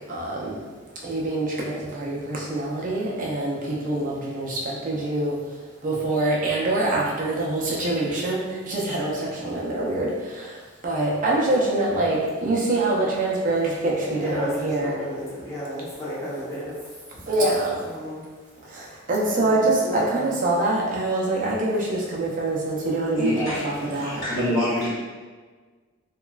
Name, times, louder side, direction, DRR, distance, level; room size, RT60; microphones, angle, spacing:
voice 1, 0.1-0.6 1.0-3.6 3.9-5.3 5.8-8.4 8.7-10.5 10.8-15.0 17.3-17.8 19.1-23.5 23.9-24.2, right 2 dB, 40° right, -4 dB, 0.5 m, -24 dB
voice 2, 13.9-16.7 17.3-17.5 17.8-18.2 19.3-20.4, equal, 15° left, -9 dB, 0.7 m, -33 dB
voice 3, 23.1-24.9, equal, 65° left, -9 dB, 1.4 m, -26 dB
2.9 x 2.3 x 2.3 m, 1.5 s
head